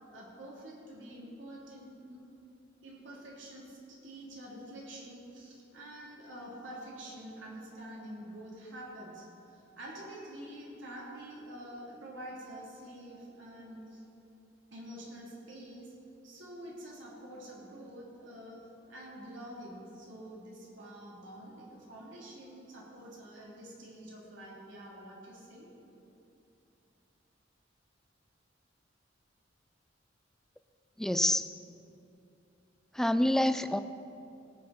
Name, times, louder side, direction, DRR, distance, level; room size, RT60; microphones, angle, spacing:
voice 1, 0.1-2.2 2.8-14.0 14.7-15.9 16.2-18.6 18.9-25.7, right 1 dB, 80° right, -4 dB, 3.2 m, -47 dB
voice 2, 31.0-31.4 33.0-33.8, left 1 dB, ahead, 11 dB, 0.3 m, -27 dB
18.5 x 9.6 x 4.3 m, 2.7 s
head